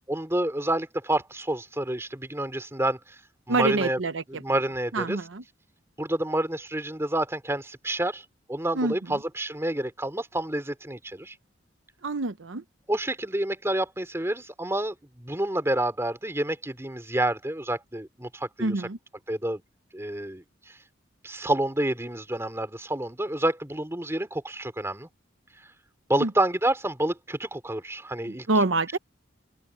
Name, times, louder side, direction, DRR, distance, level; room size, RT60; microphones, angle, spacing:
voice 1, 0.1-3.0 3.5-4.0 4.3-5.2 6.0-11.3 12.9-18.7 19.3-19.6 19.9-20.8 21.2-25.1 26.1-28.5, right 1 dB, 15° right, 2.9 m, -28 dB
voice 2, 3.5-4.4 4.9-5.4 8.7-8.9 12.0-12.6 18.6-19.0 26.2-26.3 28.3-29.0, right 2 dB, 70° right, 0.8 m, -26 dB
open air
head